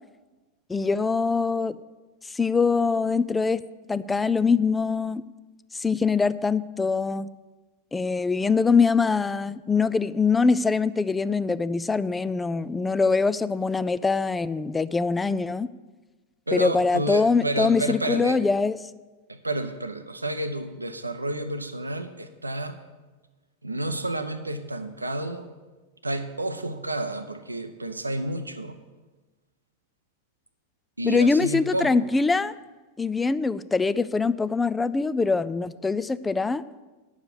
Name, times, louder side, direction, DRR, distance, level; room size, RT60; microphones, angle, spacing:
voice 1, 0.7-1.8 2.3-3.6 3.9-5.2 5.7-7.3 7.9-15.7 16.5-18.8 31.0-32.5 33.0-36.6, left 4 dB, 10° left, 16 dB, 0.3 m, -23 dB
voice 2, 16.5-18.4 19.4-22.8 23.6-25.5 26.0-28.8 31.0-32.0, right 1 dB, 80° right, 10 dB, 0.6 m, -30 dB
9.6 x 7.2 x 7.2 m, 1.3 s
figure-of-eight pair, 90°, 0 cm